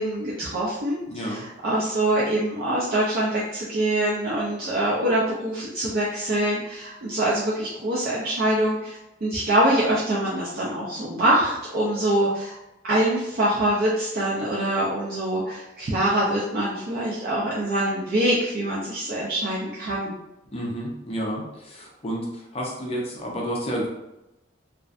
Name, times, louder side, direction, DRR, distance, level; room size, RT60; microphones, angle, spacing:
voice 1, 0.0-12.6 12.8-20.2, right 1 dB, 55° right, -6 dB, 0.4 m, -24 dB
voice 2, 1.1-1.4 20.5-22.3 22.5-23.9, equal, 30° left, -2 dB, 0.5 m, -30 dB
2.5 x 2.1 x 2.4 m, 0.92 s
head